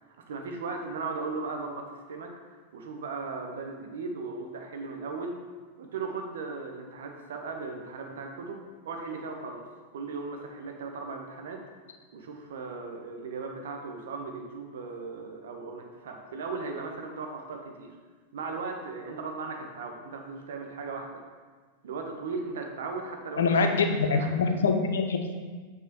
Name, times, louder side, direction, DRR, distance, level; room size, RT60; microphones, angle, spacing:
voice 1, 0.0-5.4 5.8-9.7 9.9-11.6 12.1-17.9 18.3-21.2 21.8-23.8 24.1-24.6, right 4 dB, 60° right, 3 dB, 0.8 m, -37 dB
voice 2, 23.4-25.3, left 4 dB, 65° left, 5 dB, 0.6 m, -24 dB
8.1 x 2.8 x 4.3 m, 1.4 s
figure-of-eight pair, 90°, 0 cm